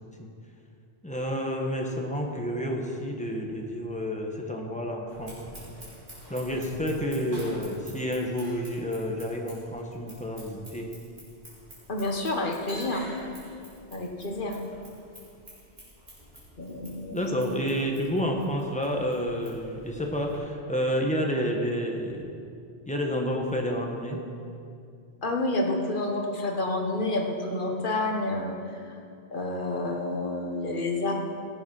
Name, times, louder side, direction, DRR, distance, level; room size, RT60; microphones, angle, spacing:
voice 1, 1.0-5.4 6.3-10.9 17.1-22.3 22.9-24.2, equal, 5° left, 0 dB, 1.4 m, -29 dB
Scissors, 5.1-20.4, equal, 50° right, 4.1 m, -48 dB
voice 2, 11.9-13.1 13.9-14.6 16.6-17.3 25.2-28.8 29.3-31.1, left 2 dB, 50° left, 2 dB, 1.5 m, -29 dB
16.0 x 8.3 x 5.6 m, 2.5 s
omnidirectional pair, 1.1 m